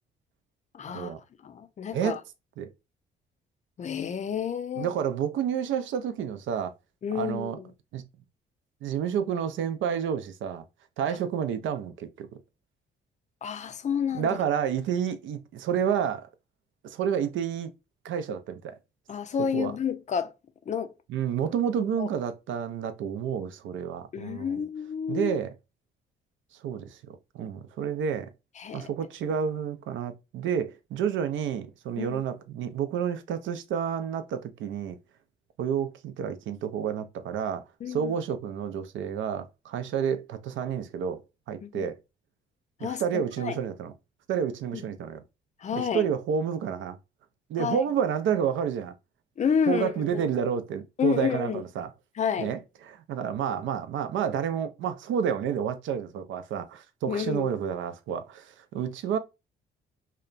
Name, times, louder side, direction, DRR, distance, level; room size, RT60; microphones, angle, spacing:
voice 1, 0.7-1.1 1.4-2.2 3.8-4.9 7.0-7.6 11.1-11.2 13.4-14.4 19.1-20.3 20.7-20.9 21.8-22.1 24.1-25.4 28.6-28.9 32.0-32.2 37.8-38.2 41.6-41.9 42.8-43.0 43.4-43.6 44.7-44.8 45.6-46.1 47.6-47.8 49.4-50.2 51.0-51.6 52.2-52.5 57.1-57.5, left 7 dB, 35° left, 0.4 m, -30 dB
voice 2, 4.8-6.7 7.1-7.6 7.9-8.0 8.8-10.6 11.0-12.3 14.1-16.3 16.8-17.7 18.0-18.8 19.5-19.7 21.1-24.6 25.1-25.5 26.6-28.3 28.7-35.0 35.6-41.2 41.5-41.9 42.8-43.9 44.3-45.2 45.7-47.0 47.5-48.9 49.7-51.9 52.4-59.2, right 8 dB, 75° right, 0.5 m, -30 dB
2.8 x 2.2 x 2.4 m
cardioid pair, 90°, 20 cm